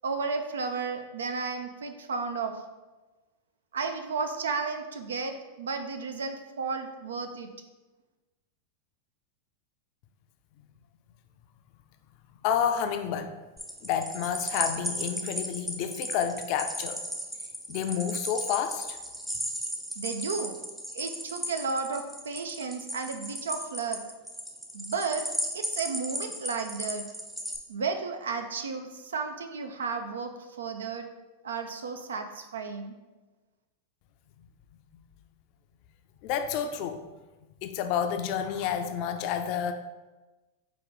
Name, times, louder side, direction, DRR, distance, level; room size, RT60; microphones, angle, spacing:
voice 1, 0.0-2.6 3.7-7.5 20.0-20.6 20.9-24.0 24.7-25.3 25.5-27.1 27.7-31.1 31.4-32.9, right 4 dB, 85° right, 7 dB, 0.3 m, -33 dB
voice 2, 12.4-13.3 13.8-17.0 17.7-19.0 36.2-37.0 37.6-39.7, left 8 dB, 55° left, 8 dB, 0.4 m, -29 dB
sound 1, 13.6-27.6, equal, 5° right, 0.5 m, -35 dB
4.9 x 2.3 x 3.8 m, 1.2 s
hypercardioid pair, 100°, 0 cm